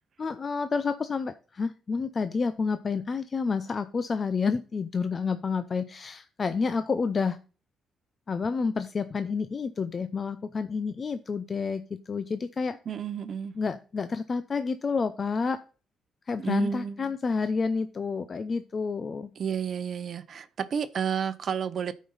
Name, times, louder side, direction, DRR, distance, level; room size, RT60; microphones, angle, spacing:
voice 1, 0.2-7.4 8.3-11.8 12.1-12.8 13.6-15.6 16.3-19.3, left 5 dB, 40° left, 0.5 m, -29 dB
voice 2, 12.9-13.5 16.4-17.1 19.4-21.9, right 7 dB, 55° right, 0.7 m, -31 dB
13.0 x 5.2 x 4.0 m
cardioid pair, 90°, 0 cm